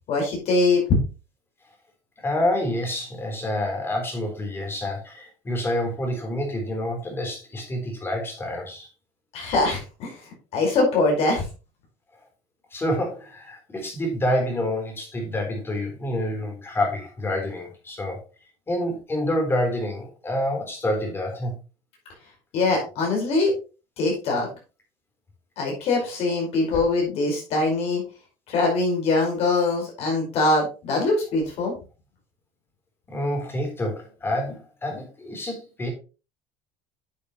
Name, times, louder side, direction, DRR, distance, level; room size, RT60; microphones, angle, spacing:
voice 1, 0.1-1.0 9.3-10.1 10.5-11.4 22.5-23.5 24.0-24.5 25.6-28.0 28.5-31.7, left 3 dB, 55° left, 0 dB, 5.0 m, -22 dB
voice 2, 2.2-8.9 12.7-18.2 18.7-21.5 33.1-35.9, left 1 dB, 20° left, 3 dB, 3.8 m, -28 dB
10.5 x 7.0 x 3.1 m, 0.33 s
cardioid pair, 125°, 12 cm